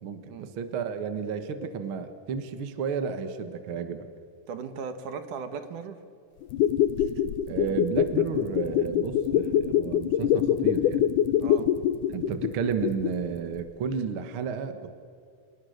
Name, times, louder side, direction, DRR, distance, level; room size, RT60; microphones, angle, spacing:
voice 1, 0.0-4.1 7.2-11.4 12.1-14.9, right 6 dB, 50° right, 8 dB, 2.0 m, -32 dB
voice 2, 4.5-6.0 11.4-11.7, right 6 dB, 70° right, 9 dB, 3.0 m, -37 dB
sound 1, 6.4-13.3 13.6-13.7, left 10 dB, 80° left, 2.2 m, -24 dB
29.5 x 27.0 x 6.7 m, 2.4 s
omnidirectional pair, 3.7 m